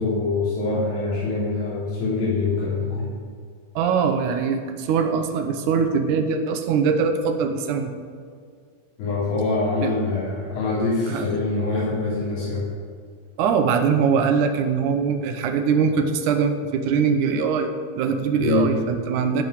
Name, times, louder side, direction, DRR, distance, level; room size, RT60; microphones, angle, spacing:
voice 1, 0.0-3.1 9.0-12.6 18.4-18.7, left 3 dB, 90° left, -10 dB, 5.6 m, -24 dB
voice 2, 3.8-7.9 9.8-9.9 11.1-11.3 13.4-19.4, right 6 dB, 70° right, 5 dB, 2.0 m, -22 dB
15.0 x 5.7 x 9.3 m, 2.1 s
omnidirectional pair, 4.7 m